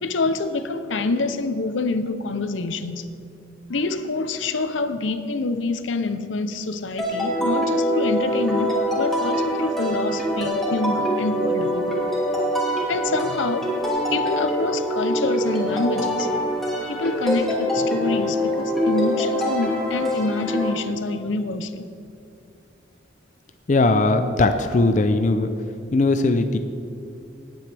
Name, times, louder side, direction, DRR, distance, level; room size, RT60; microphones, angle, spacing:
voice 1, 0.0-3.1 3.7-11.9 12.9-13.7 14.1-16.3 16.8-21.9, left 3 dB, 85° left, 11 dB, 0.7 m, -26 dB
sound 1, 7.0-20.7, equal, ahead, 2.5 m, -24 dB
voice 2, 23.7-25.5 25.9-26.6, left 2 dB, 40° left, 8 dB, 0.5 m, -19 dB
19.0 x 9.0 x 3.4 m, 2.5 s
head